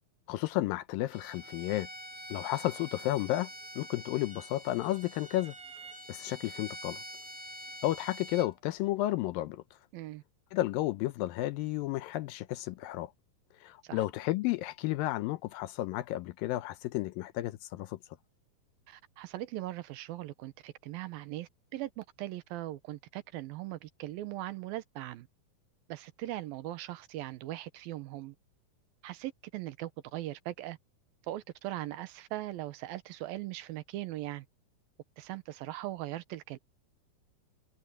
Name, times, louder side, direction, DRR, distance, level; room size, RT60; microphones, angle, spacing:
voice 1, 0.3-1.9 2.3-3.5 3.8-5.5 6.1-7.0 7.8-9.6 10.5-13.1 13.6-18.0, left 15 dB, 80° left, 2.3 m, -32 dB
Bowed string instrument, 1.1-8.5, equal, 50° right, 1.0 m, -46 dB
voice 2, 9.9-10.2 13.8-14.0 18.9-25.3 25.9-28.4 29.0-30.8 31.2-34.5 35.2-36.6, right 15 dB, 75° right, 2.6 m, -40 dB
omnidirectional pair, 4.4 m